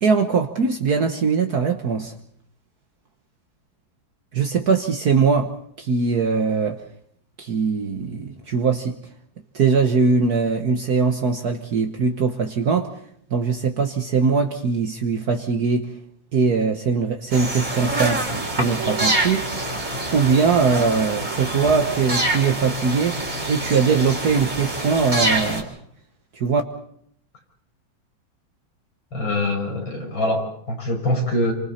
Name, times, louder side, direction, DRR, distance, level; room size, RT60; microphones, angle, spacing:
voice 1, 0.0-2.1 4.3-5.5 5.8-6.8 7.4-9.0 9.5-12.9 13.3-15.9 16.3-19.5 20.1-23.2 23.5-25.7 26.3-26.6, right 5 dB, 55° right, 4 dB, 1.7 m, -21 dB
sound 1, 17.3-25.6, right 2 dB, 40° right, 4.2 m, -26 dB
voice 2, 29.1-31.5, left 1 dB, 85° left, 0 dB, 6.0 m, -24 dB
29.0 x 25.0 x 4.3 m, 0.68 s
omnidirectional pair, 2.1 m